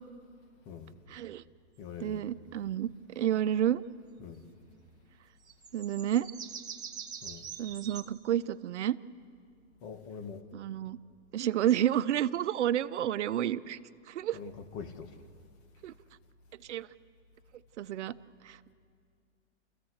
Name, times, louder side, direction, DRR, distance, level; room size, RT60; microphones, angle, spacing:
voice 1, 1.1-1.4 2.0-3.8 5.7-6.3 7.6-9.0 10.5-11.0 11.3-13.8 14.1-14.4 15.8-15.9 16.6-16.9 17.8-18.1 18.4-18.7, right 11 dB, 80° right, 0.8 m, -30 dB
voice 2, 1.8-2.2 4.2-4.4 7.2-7.5 9.8-10.4 14.3-15.1, left 6 dB, 40° left, 2.1 m, -43 dB
sound 1, 5.5-8.0, right 7 dB, 10° right, 1.6 m, -44 dB
30.0 x 15.0 x 8.0 m
hypercardioid pair, 135°, 35 cm